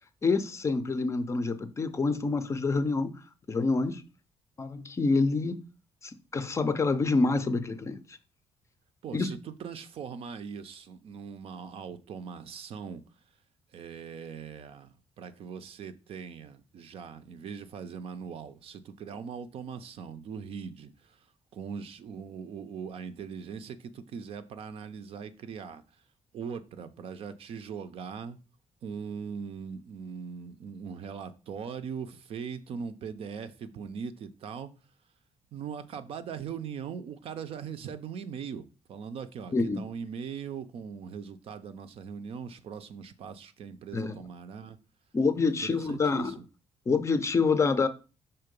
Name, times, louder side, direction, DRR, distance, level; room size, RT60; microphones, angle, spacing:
voice 1, 0.2-3.2 3.5-4.0 4.6-5.6 6.0-8.0 9.1-9.4 39.5-39.9 43.9-44.2 45.1-46.4 46.9-47.9, left 4 dB, 25° left, 0.5 m, -27 dB
voice 2, 9.0-13.0 13.7-21.2 21.5-25.8 26.3-28.4 28.8-34.7 35.5-44.8 45.6-46.3, right 6 dB, 55° right, 0.6 m, -40 dB
5.7 x 3.8 x 5.2 m
cardioid pair, 160°, 11 cm